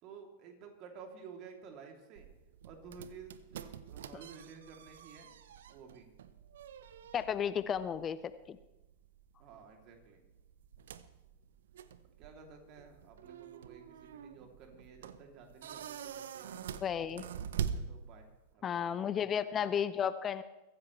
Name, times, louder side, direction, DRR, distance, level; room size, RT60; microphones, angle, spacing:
voice 1, 0.0-2.3 2.6-5.3 5.7-6.1 9.4-10.2 12.2-16.6 17.7-19.2 19.5-19.6, right 5 dB, 40° right, 3 dB, 3.1 m, -53 dB
sound 1, 2.2-18.5, right 8 dB, 60° right, 0.8 m, -45 dB
voice 2, 7.1-8.6 16.8-17.3 18.6-20.4, left 8 dB, 25° left, 15 dB, 0.6 m, -33 dB
23.0 x 15.5 x 3.3 m, 0.96 s
figure-of-eight pair, 90°, 0 cm